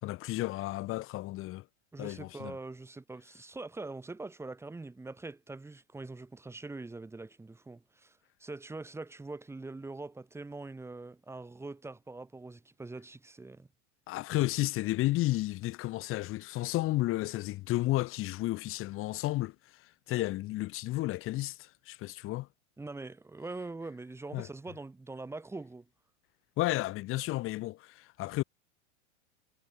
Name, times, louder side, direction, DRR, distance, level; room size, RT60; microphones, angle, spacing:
voice 1, 0.0-1.6 2.0-2.6 14.1-22.5 24.3-24.5 26.6-28.4, left 18 dB, 35° left, 5.5 m, -32 dB
voice 2, 1.9-13.7 22.8-25.8, right 3 dB, 5° right, 6.1 m, -43 dB
supercardioid pair, 150°, 38 cm